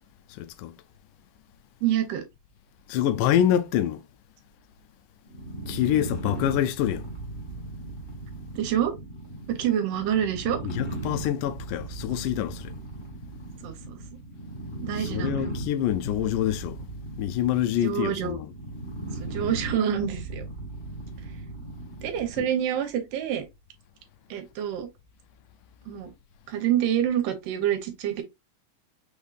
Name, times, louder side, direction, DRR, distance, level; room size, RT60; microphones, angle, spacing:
voice 1, 0.3-0.7 2.9-4.0 5.7-7.1 10.6-12.7 15.0-16.8 17.2-18.5 22.4-22.5, left 11 dB, 80° left, 2.0 m, -26 dB
voice 2, 1.8-2.2 8.6-8.9 9.5-10.6 13.6-14.2 14.8-15.5 17.8-18.4 19.2-20.4 22.0-23.4 24.3-24.9 25.9-26.1 26.5-28.2, right 10 dB, 75° right, 2.4 m, -27 dB
sound 1, 5.3-22.5, right 2 dB, 20° left, 1.3 m, -37 dB
6.2 x 3.5 x 2.4 m
omnidirectional pair, 4.0 m